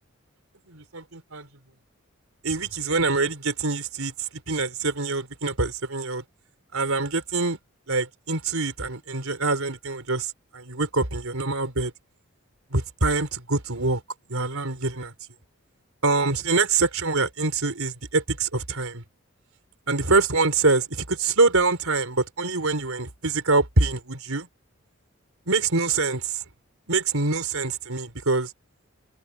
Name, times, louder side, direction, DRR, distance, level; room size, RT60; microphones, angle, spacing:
voice 1, 0.7-1.5 2.4-6.2 6.7-7.6 7.9-11.9 12.7-14.0 14.3-15.1 16.0-19.0 19.9-24.5 25.5-26.4 26.9-28.5, right 3 dB, 85° right, 3.8 m, -25 dB
head